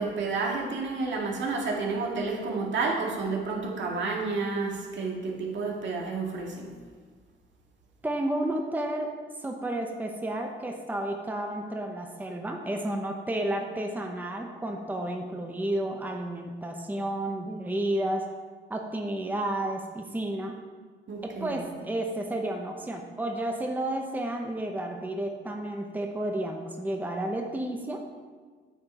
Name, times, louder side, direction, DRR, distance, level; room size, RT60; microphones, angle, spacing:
voice 1, 0.0-6.7 21.1-21.6, right 4 dB, 65° right, -1 dB, 1.9 m, -30 dB
voice 2, 8.0-9.1 9.4-18.3 18.7-20.6 21.2-28.0, right 1 dB, 10° right, 2 dB, 0.9 m, -31 dB
9.0 x 7.6 x 4.4 m, 1.5 s
cardioid pair, 90°, 20 cm